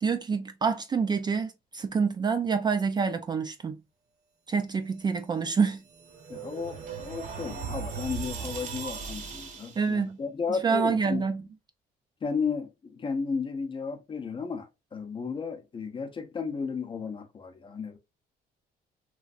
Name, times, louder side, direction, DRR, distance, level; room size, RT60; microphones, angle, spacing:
voice 1, 0.0-3.8 4.5-5.8 9.8-10.2 10.5-11.4, right 5 dB, 25° right, 0.3 m, -27 dB
sound 1, 5.4-9.9, right 6 dB, 45° right, 0.8 m, -38 dB
voice 2, 6.3-11.3 12.2-18.0, left 5 dB, 30° left, 0.6 m, -34 dB
3.1 x 2.5 x 2.4 m
cardioid pair, 110°, 17 cm